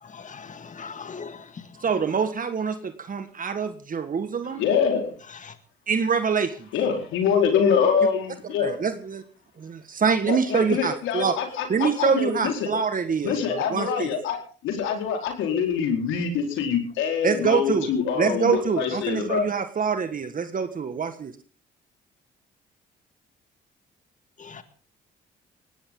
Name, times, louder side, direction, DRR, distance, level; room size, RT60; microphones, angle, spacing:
voice 1, 0.0-1.7 5.3-5.5 24.4-24.6, left 5 dB, 40° left, 9 dB, 1.9 m, -40 dB
voice 2, 1.8-4.6 5.9-6.7 8.6-9.2 9.6-11.4 11.7-14.1 17.2-21.3, right 6 dB, 45° right, 9 dB, 1.6 m, -25 dB
voice 3, 4.6-5.1 6.7-8.8 10.3-12.7 13.2-14.4 14.6-19.5, left 7 dB, 85° left, 3 dB, 4.6 m, -25 dB
20.0 x 17.0 x 3.9 m, 0.39 s
supercardioid pair, 70°, 20 cm